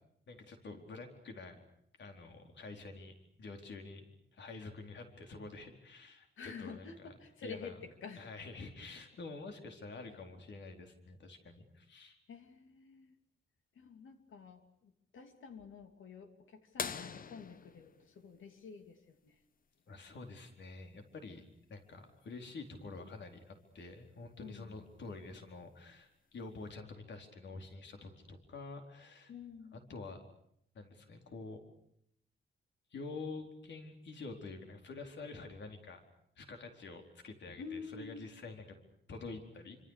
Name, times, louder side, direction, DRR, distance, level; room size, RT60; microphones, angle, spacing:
voice 1, 0.3-1.6 2.0-4.1 4.3-7.1 7.4-7.8 8.2-12.2 19.9-21.4 21.7-29.3 29.7-30.2 30.7-31.6 32.9-36.0 36.4-38.7 39.1-39.8, left 3 dB, 65° left, 4 dB, 4.3 m, -48 dB
voice 2, 6.4-8.3 12.3-13.1 13.7-19.4 24.4-24.8 29.3-29.8 37.5-38.3, left 5 dB, 85° left, 6 dB, 2.9 m, -49 dB
sound 1, 16.8-19.2 21.2-21.3 23.5-23.6 25.3-25.6 26.4-26.5, left 6 dB, 45° left, 1.1 m, -43 dB
28.5 x 26.0 x 6.6 m, 0.72 s
wide cardioid pair, 170°, 20 cm